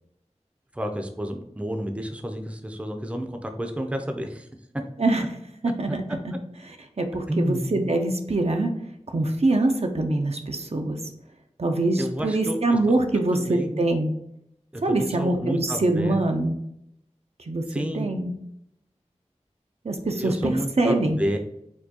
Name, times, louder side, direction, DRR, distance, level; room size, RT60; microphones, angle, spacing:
voice 1, 0.7-4.5 7.3-7.9 12.0-12.8 13.4-13.8 14.7-16.2 17.7-18.1 20.1-21.4, equal, 10° right, 4 dB, 0.5 m, -30 dB
voice 2, 5.6-6.3 6.6-8.7 9.1-11.0 11.6-14.1 14.8-16.5 17.5-17.6 17.9-18.3 19.8-21.2, right 2 dB, 60° right, 4 dB, 0.5 m, -24 dB
4.4 x 2.3 x 2.8 m, 0.77 s
wide cardioid pair, 45°, 12 cm